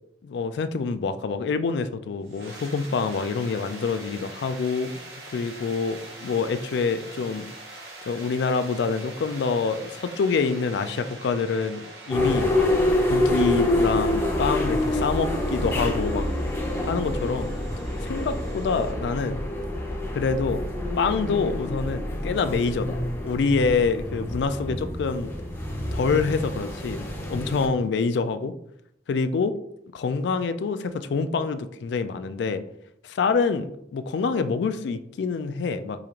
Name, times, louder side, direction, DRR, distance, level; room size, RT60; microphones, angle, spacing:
voice 1, 0.2-4.9 5.3-7.5 8.1-12.7 13.1-16.3 16.8-17.5 18.0-19.4 20.1-20.7 21.0-23.0 23.2-25.3 25.9-27.0 27.3-28.5 29.1-29.6 29.9-32.6 33.0-36.1, left 4 dB, 75° left, 11 dB, 0.3 m, -26 dB
sound 1, 2.2-18.9, right 2 dB, 65° right, 1.0 m, -44 dB
sound 2, 12.1-27.7, left 1 dB, 15° left, 0.7 m, -27 dB
4.9 x 2.4 x 2.9 m, 0.77 s
head